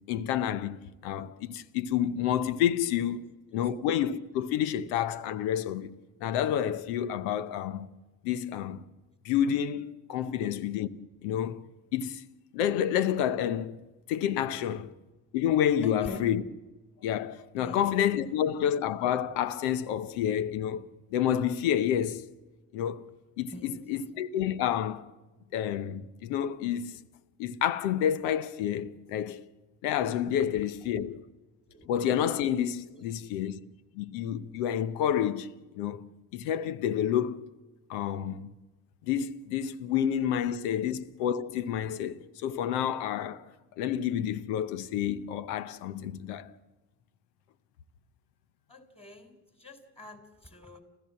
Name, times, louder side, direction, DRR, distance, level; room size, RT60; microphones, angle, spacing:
voice 1, 0.1-0.8 1.0-3.2 3.5-5.9 6.2-7.9 8.2-8.8 9.2-10.9 11.2-11.6 11.9-12.2 12.5-13.8 14.1-14.9 15.3-16.4 17.0-20.8 21.1-22.3 22.7-23.0 23.4-25.1 25.5-27.0 27.4-29.4 29.8-31.2 31.9-33.6 33.9-35.5 35.7-36.0 36.3-37.5 37.9-38.5 39.0-43.4 43.8-46.5, left 10 dB, 85° left, 0.8 m, -29 dB
voice 2, 15.8-16.3 17.6-17.9 18.2-18.3 23.5-23.8 31.7-31.9 32.9-33.2 40.7-40.8 48.7-50.8, equal, 10° left, 4.5 m, -46 dB
30.0 x 14.5 x 7.5 m
hypercardioid pair, 40°, 47 cm